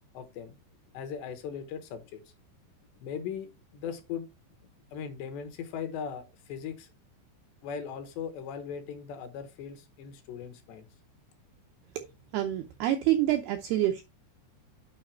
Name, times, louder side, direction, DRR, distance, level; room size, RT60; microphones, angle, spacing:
voice 1, 0.1-0.5 0.9-2.3 3.0-4.3 4.9-6.9 7.6-10.9, left 7 dB, 75° left, 3.0 m, -39 dB
voice 2, 12.3-14.0, right 13 dB, 80° right, 2.3 m, -27 dB
9.0 x 5.0 x 4.5 m
omnidirectional pair, 5.5 m